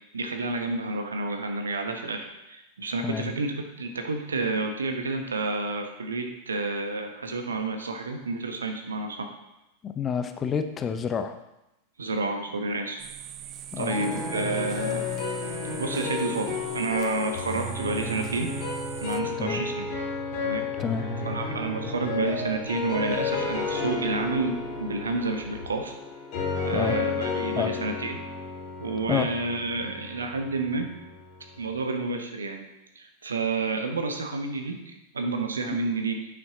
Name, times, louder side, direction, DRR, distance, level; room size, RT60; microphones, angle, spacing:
voice 1, 0.1-9.3 12.0-13.0 13.8-15.1 15.8-18.5 19.0-19.9 20.4-20.7 21.2-25.9 26.6-28.2 28.8-30.9 31.6-32.6 32.9-36.2, right 3 dB, 70° right, 5 dB, 1.0 m, -30 dB
voice 2, 3.0-3.4 9.8-11.4 13.7-14.0 19.4-19.6 20.8-21.1 26.7-27.0 27.6-27.7 29.1-29.3 35.7-35.8, left 6 dB, 25° left, 9 dB, 0.6 m, -28 dB
sound 1, 13.0-19.2, right 10 dB, 35° right, 0.5 m, -42 dB
sound 2, 13.9-31.7, left 4 dB, 40° left, 2.8 m, -32 dB
sound 3, 18.4-25.7, equal, 80° left, 1.3 m, -46 dB
8.8 x 6.0 x 3.7 m, 0.92 s
figure-of-eight pair, 90°, 0 cm